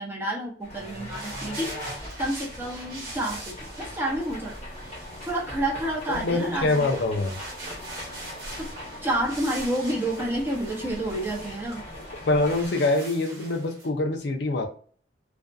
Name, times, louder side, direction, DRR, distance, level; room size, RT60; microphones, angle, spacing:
voice 1, 0.0-1.7 2.2-4.5 5.2-6.9 8.6-8.7 9.0-11.8, right 1 dB, 15° right, -2 dB, 0.6 m, -29 dB
sound 1, 0.6-12.7, left 1 dB, 40° left, 0.9 m, -40 dB
sound 2, 0.8-13.9, right 2 dB, 55° right, 1.0 m, -43 dB
voice 2, 6.1-7.3 12.3-14.7, left 2 dB, 65° left, 3 dB, 0.5 m, -24 dB
2.5 x 2.4 x 2.2 m, 0.43 s
head